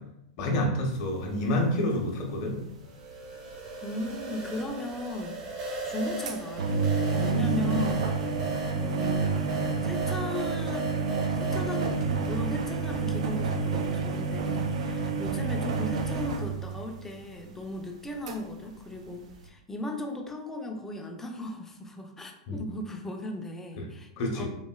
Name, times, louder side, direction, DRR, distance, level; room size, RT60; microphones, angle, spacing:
voice 1, 0.4-2.5 22.5-22.6 23.8-23.9 24.2-24.5, left 1 dB, 50° left, 1 dB, 0.7 m, -28 dB
sound 1, 1.2-1.4 1.8-1.9 2.0-2.1 2.6-2.7 3.1-3.2 3.5-3.7 4.0-4.7 5.2-17.4 17.9-18.0 18.3-18.4 18.7-19.1 19.3-19.4, right 4 dB, 75° right, 0.4 m, -29 dB
sound 2, 2.9-12.0, right 3 dB, 35° right, 0.7 m, -37 dB
voice 2, 3.8-24.5, left 2 dB, 10° left, 3 dB, 0.4 m, -37 dB
3.0 x 2.5 x 2.3 m, 0.80 s
hypercardioid pair, 120°, 4 cm